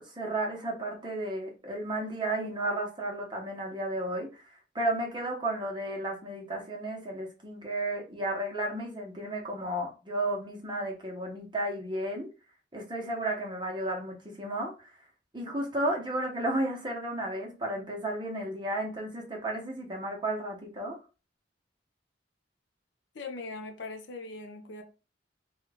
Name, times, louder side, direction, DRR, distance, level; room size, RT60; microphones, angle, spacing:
voice 1, 0.1-12.3 12.7-14.9 15.3-21.0, right 1 dB, 25° right, 0.9 m, -33 dB
voice 2, 23.1-24.8, left 3 dB, 75° left, 0.6 m, -40 dB
3.0 x 2.3 x 3.4 m
head